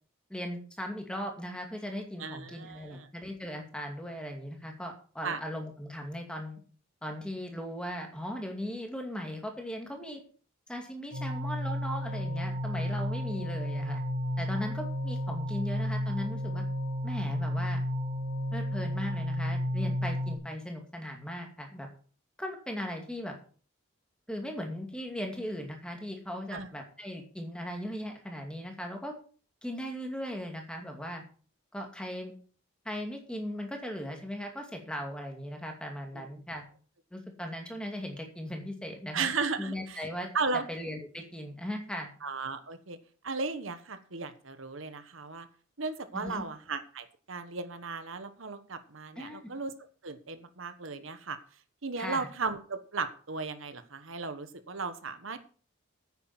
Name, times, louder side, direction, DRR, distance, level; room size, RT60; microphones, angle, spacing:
voice 1, 0.3-6.6 7.0-10.2 10.7-14.0 14.4-16.6 17.0-17.8 18.5-21.9 22.4-23.3 24.3-29.1 29.6-31.2 31.7-32.3 32.8-36.6 37.1-39.3 39.6-40.3 40.7-42.1 46.1-46.5 49.2-49.4 52.0-52.3, equal, 5° left, 3 dB, 2.3 m, -38 dB
voice 2, 2.2-3.1 5.2-5.4 13.3-13.4 26.5-26.7 39.1-40.0 40.3-40.6 42.2-43.0 43.2-45.5 45.8-49.7 50.0-51.4 51.8-55.5, right 4 dB, 70° right, 10 dB, 1.2 m, -35 dB
sound 1, 11.1-20.4, equal, 45° right, 3.7 m, -32 dB
9.7 x 8.9 x 6.0 m, 0.42 s
head